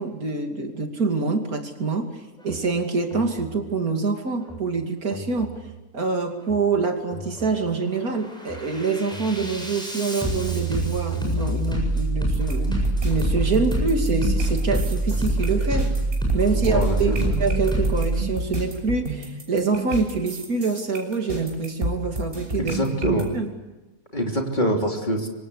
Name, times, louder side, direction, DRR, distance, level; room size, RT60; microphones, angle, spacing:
voice 1, 0.0-5.6 5.9-12.8 13.0-15.9 16.3-22.8 23.0-23.5, right 4 dB, 85° right, 4 dB, 3.1 m, -26 dB
Bass drum, 2.4-2.6 3.1-3.6 4.4-4.6 5.1-5.6 6.4-6.6 7.1-7.6 8.0-18.2, right 1 dB, 5° left, 7.5 m, -26 dB
sound 1, 12.3-23.2, right 1 dB, 40° right, 6.6 m, -31 dB
voice 2, 16.7-17.3 22.6-23.3 24.1-25.3, equal, 30° left, 2 dB, 3.4 m, -25 dB
25.5 x 25.0 x 8.3 m, 1.1 s
omnidirectional pair, 1.5 m